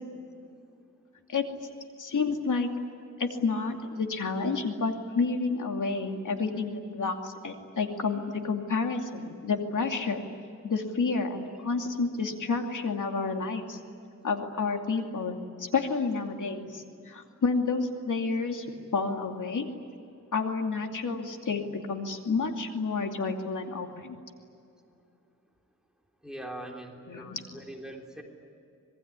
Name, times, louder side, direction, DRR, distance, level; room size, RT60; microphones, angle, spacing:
voice 1, 2.0-2.7 3.2-10.2 10.6-13.8 14.2-18.7 18.9-19.7 20.3-24.2 27.1-27.4, left 4 dB, 75° left, 4 dB, 2.7 m, -30 dB
voice 2, 26.2-28.2, right 1 dB, ahead, 0 dB, 3.6 m, -42 dB
26.0 x 21.0 x 9.8 m, 2.6 s
wide cardioid pair, 115°, 31 cm